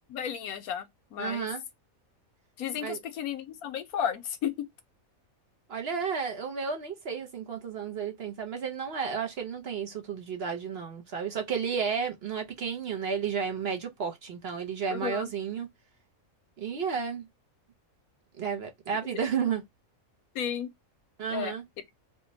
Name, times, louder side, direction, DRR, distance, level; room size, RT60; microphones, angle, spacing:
voice 1, 0.1-0.9 1.1-1.5 2.6-4.5 14.9-15.3 20.3-20.7 21.3-21.5, left 8 dB, 85° left, 1.2 m, -33 dB
voice 2, 1.2-1.6 2.8-3.0 5.7-15.7 16.6-17.3 18.4-19.6 21.2-21.6, right 6 dB, 55° right, 0.8 m, -32 dB
3.4 x 2.1 x 3.8 m
omnidirectional pair, 1.5 m